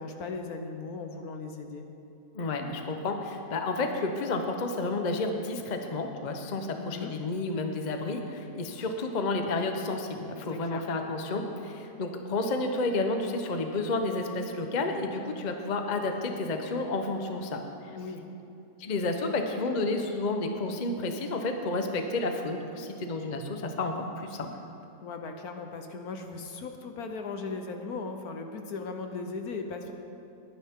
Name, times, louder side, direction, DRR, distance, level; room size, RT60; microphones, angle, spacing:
voice 1, 0.0-1.9 6.8-7.1 10.5-10.8 17.9-18.2 25.0-29.9, left 4 dB, 60° left, 5 dB, 1.3 m, -37 dB
voice 2, 2.3-17.6 18.8-24.5, left 2 dB, 35° left, 4 dB, 0.8 m, -31 dB
21.0 x 10.0 x 3.7 m, 2.7 s
omnidirectional pair, 1.9 m